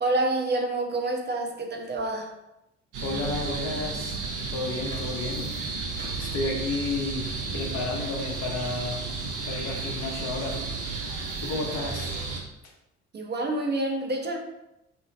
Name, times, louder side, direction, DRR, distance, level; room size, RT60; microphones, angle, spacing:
voice 1, 0.0-2.3 13.1-14.4, right 2 dB, 30° right, 2 dB, 0.6 m, -27 dB
sound 1, 2.9-12.4, right 4 dB, 70° right, 0.7 m, -33 dB
voice 2, 3.0-4.2 4.5-9.0 9.4-10.6 10.9-12.3, left 2 dB, 55° left, 0 dB, 0.8 m, -32 dB
2.8 x 2.6 x 2.6 m, 0.89 s
hypercardioid pair, 50°, 32 cm